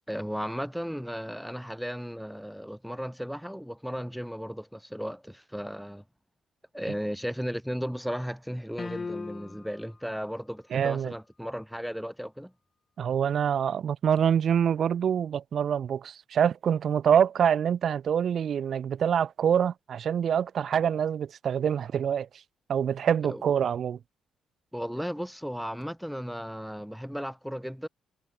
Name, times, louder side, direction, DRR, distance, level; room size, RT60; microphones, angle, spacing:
voice 1, 0.1-6.0 6.7-12.5 23.2-23.4 24.7-27.9, equal, ahead, 2.8 m, -35 dB
sound 1, 8.8-9.8, left 4 dB, 30° left, 0.7 m, -37 dB
voice 2, 10.7-11.1 13.0-22.3 22.7-24.0, right 8 dB, 60° right, 0.8 m, -25 dB
cardioid pair, 90°, 0 cm